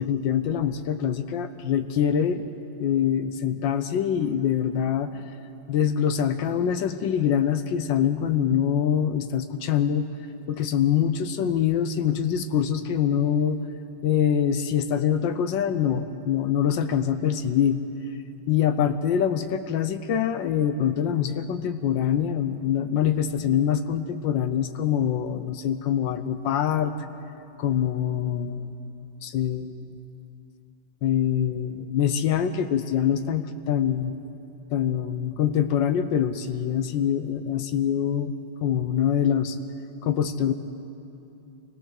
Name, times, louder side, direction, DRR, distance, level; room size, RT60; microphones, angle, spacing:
voice 1, 0.0-2.5 2.8-5.1 5.7-10.1 10.5-13.6 14.0-17.8 18.5-26.9 27.6-28.7 29.2-29.7 31.0-34.1 34.7-38.3 38.6-39.6 40.0-40.5, left 9 dB, 70° left, 10 dB, 1.3 m, -24 dB
24.0 x 17.0 x 6.4 m, 2.8 s
omnidirectional pair, 2.2 m